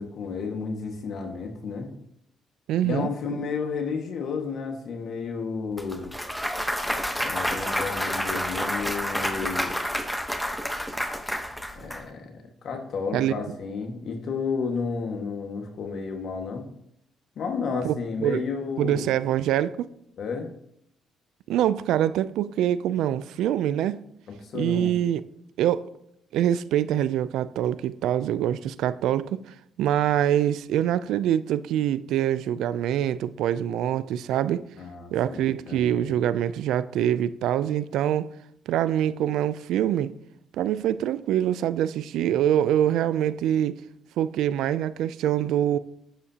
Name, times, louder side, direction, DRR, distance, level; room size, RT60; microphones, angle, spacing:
voice 1, 0.0-1.9 2.8-6.1 7.2-9.7 11.7-12.3 12.6-16.6 17.3-19.1 20.2-20.5 24.5-24.9 34.8-36.1, left 5 dB, 65° left, 1.7 m, -32 dB
voice 2, 2.7-3.1 13.1-13.3 17.8-18.4 18.8-19.9 21.5-24.0 24.5-25.2 25.6-25.9 26.3-29.4 29.8-34.7 35.1-38.3 38.7-40.1 40.6-43.8 44.2-45.8, right 11 dB, 85° right, 0.4 m, -24 dB
Clapping / Cheering / Applause, 5.8-12.0, equal, 5° left, 1.1 m, -29 dB
11.0 x 8.3 x 2.9 m
cardioid pair, 90°, 0 cm